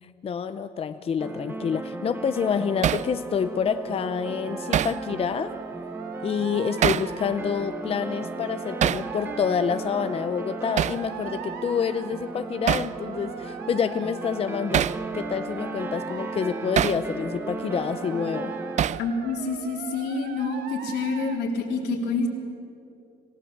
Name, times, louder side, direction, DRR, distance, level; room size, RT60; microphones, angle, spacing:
voice 1, 0.0-5.5 6.2-14.9 15.1-18.5, left 6 dB, 35° left, 10 dB, 0.7 m, -28 dB
sound 1, 1.2-18.8, right 2 dB, 15° right, 1.3 m, -36 dB
Hammer, 2.8-3.1 4.7-5.0 6.8-7.1 8.8-9.1 10.8-11.0 12.7-12.9 14.7-15.0 16.8-17.0 18.8-19.1, right 10 dB, 45° right, 0.4 m, -23 dB
sound 2, 4.0-21.4, right 8 dB, 75° right, 1.4 m, -41 dB
voice 2, 19.0-22.3, left 3 dB, 85° left, 1 dB, 3.6 m, -27 dB
26.5 x 16.0 x 7.4 m, 2.8 s
cardioid pair, 110°, 17 cm